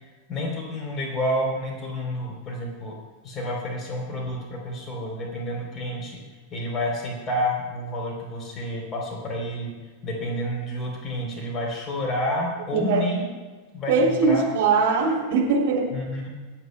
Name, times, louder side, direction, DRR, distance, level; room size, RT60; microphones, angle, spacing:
voice 1, 0.3-3.0 3.2-6.2 6.5-9.7 10.0-13.3 13.7-14.5 15.9-16.3, left 1 dB, 25° left, -1 dB, 3.5 m, -29 dB
voice 2, 12.7-13.0 13.9-15.9, right 4 dB, 55° right, -2 dB, 3.1 m, -21 dB
26.5 x 9.0 x 2.2 m, 1.3 s
figure-of-eight pair, 90°, 0 cm